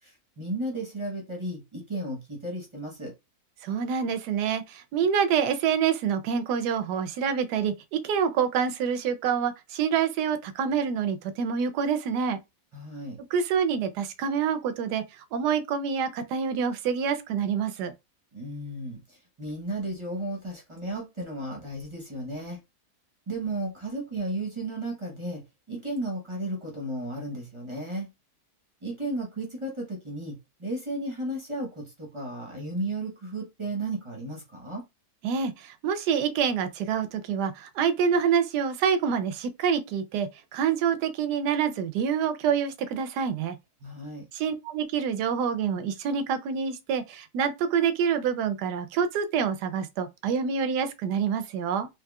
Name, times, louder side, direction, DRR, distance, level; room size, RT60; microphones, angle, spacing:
voice 1, 0.0-3.1 12.7-13.2 18.3-22.6 23.3-28.1 28.8-34.8 43.8-44.2, right 1 dB, 25° right, 0.8 m, -34 dB
voice 2, 3.6-12.4 13.3-17.9 35.2-43.6 44.3-51.9, right 7 dB, 85° right, 1.2 m, -27 dB
3.6 x 3.0 x 2.3 m
omnidirectional pair, 1.7 m